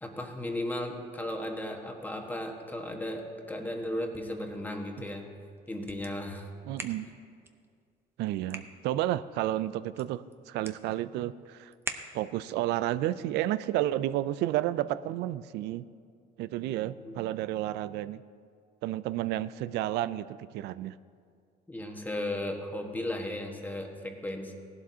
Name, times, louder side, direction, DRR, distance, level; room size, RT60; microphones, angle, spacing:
voice 1, 0.0-5.2 5.7-6.5 17.0-17.2 21.7-24.5, left 1 dB, 10° left, 2 dB, 1.3 m, -35 dB
sound 1, 3.9-12.6, right 2 dB, 15° right, 0.8 m, -47 dB
voice 2, 6.7-7.1 8.2-11.7 12.1-15.8 16.4-18.2 18.8-21.0, right 14 dB, 85° right, 16 dB, 0.4 m, -31 dB
17.0 x 11.5 x 2.8 m, 2.2 s
cardioid pair, 110°, 17 cm